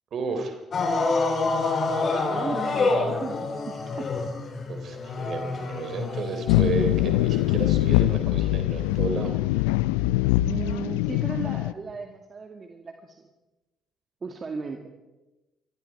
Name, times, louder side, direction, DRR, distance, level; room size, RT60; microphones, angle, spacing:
voice 1, 0.1-0.6 4.7-9.7, right 4 dB, 55° right, 6 dB, 3.5 m, -32 dB
sound 1, 0.7-7.9 8.9-9.0, left 3 dB, 50° left, 5.5 m, -28 dB
voice 2, 2.3-4.1 10.4-13.3 14.2-14.9, right 4 dB, 40° right, 4 dB, 2.2 m, -36 dB
sound 2, 6.5-11.7, left 16 dB, 80° left, 0.6 m, -23 dB
26.0 x 21.5 x 4.8 m, 1.1 s
hypercardioid pair, 50°, 0 cm